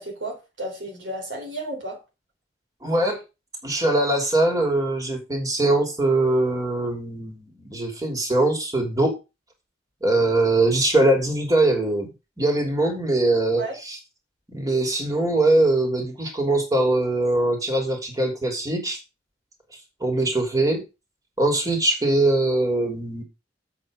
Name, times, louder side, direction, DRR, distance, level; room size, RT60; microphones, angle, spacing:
voice 1, 0.0-2.0 13.6-13.8, right 1 dB, 75° right, 3.6 m, -33 dB
voice 2, 2.8-3.2 3.6-9.1 10.0-12.1 12.4-13.6 14.5-19.0 20.0-20.8 21.4-23.2, right 2 dB, 20° right, 3.1 m, -22 dB
8.2 x 7.1 x 5.1 m
head